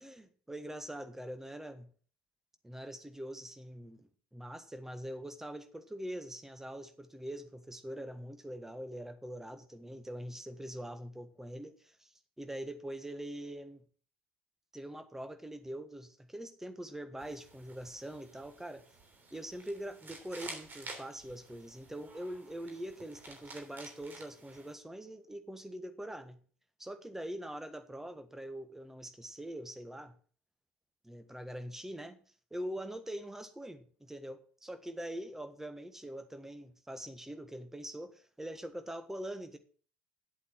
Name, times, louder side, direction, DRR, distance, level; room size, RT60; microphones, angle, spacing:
voice 1, 0.0-1.9 2.6-13.8 14.7-18.8 19.3-26.4 26.8-30.1 31.0-32.2 32.5-39.6, right 1 dB, 5° right, 9 dB, 1.5 m, -43 dB
sound 1, 17.2-24.7, right 2 dB, 30° right, 3.2 m, -51 dB
9.9 x 8.2 x 5.8 m, 0.42 s
figure-of-eight pair, 65°, 6 cm